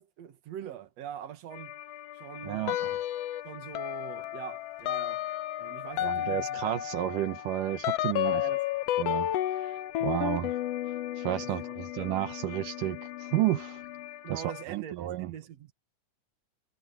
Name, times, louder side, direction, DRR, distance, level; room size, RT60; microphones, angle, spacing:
voice 1, 0.0-1.8 2.1-2.7 3.4-5.3 5.6-6.8 8.2-8.7 11.4-11.8 14.2-15.7, right 9 dB, 55° right, 2.7 m, -43 dB
sound 1, 1.5-14.7, left 14 dB, 65° left, 1.8 m, -45 dB
voice 2, 2.5-2.9 6.0-8.4 9.0-10.6 11.2-13.8 14.3-14.4 14.7-15.3, right 15 dB, 75° right, 2.4 m, -32 dB
sound 2, 2.7-3.4 3.8-14.1, left 13 dB, 85° left, 1.4 m, -33 dB
omnidirectional pair, 3.9 m